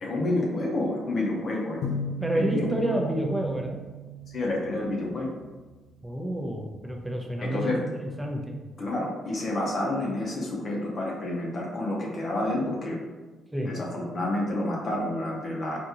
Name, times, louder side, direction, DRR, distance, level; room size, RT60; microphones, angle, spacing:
voice 1, 0.0-1.9 2.3-3.0 4.3-5.3 7.4-7.8 8.8-13.0 13.6-15.8, left 1 dB, 50° left, -2 dB, 0.7 m, -29 dB
sound 1, 1.8-5.5, right 2 dB, 90° left, 0.4 m, -36 dB
voice 2, 2.2-3.8 6.0-8.6 13.5-13.7, equal, 5° right, 1 dB, 0.5 m, -29 dB
3.5 x 2.5 x 2.8 m, 1.2 s
cardioid pair, 90°, 0 cm